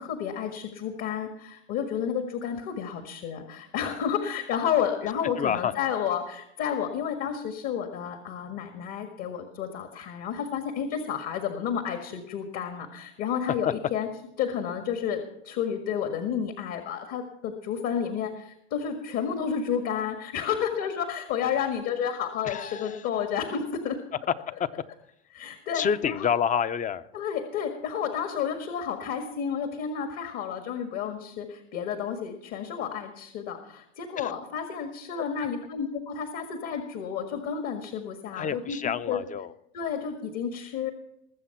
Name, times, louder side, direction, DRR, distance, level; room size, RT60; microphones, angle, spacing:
voice 1, 0.0-14.1 14.4-24.0 25.3-26.3 27.1-39.2 39.7-40.9, left 8 dB, 50° left, 6 dB, 1.8 m, -31 dB
voice 2, 5.4-5.7 22.4-23.0 24.6-24.7 25.7-27.0 34.2-34.3 38.3-39.5, left 7 dB, 25° left, 14 dB, 0.7 m, -28 dB
20.5 x 7.5 x 5.8 m, 0.79 s
hypercardioid pair, 110°, 33 cm